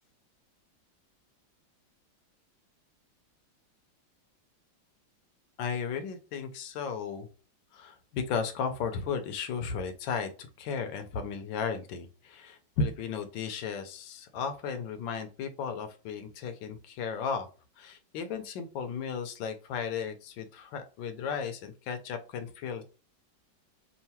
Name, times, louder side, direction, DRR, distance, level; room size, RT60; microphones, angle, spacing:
voice 1, 5.6-7.3 7.7-10.3 10.6-17.5 17.8-22.8, left 6 dB, 70° left, 7 dB, 1.4 m, -35 dB
5.6 x 2.5 x 2.8 m, 0.35 s
omnidirectional pair, 2.2 m